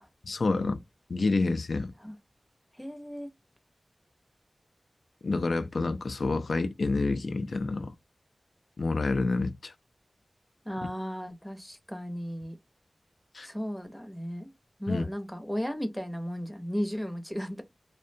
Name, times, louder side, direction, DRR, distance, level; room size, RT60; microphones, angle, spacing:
voice 1, 0.3-0.8 1.1-1.9 5.2-7.9 8.8-9.7 13.3-13.5 14.9-15.1, left 3 dB, 80° left, 0.3 m, -28 dB
voice 2, 2.7-3.3 10.6-12.6 13.4-14.5 14.8-17.6, equal, ahead, 0.6 m, -35 dB
2.5 x 2.1 x 2.6 m
wide cardioid pair, 85°, 0 cm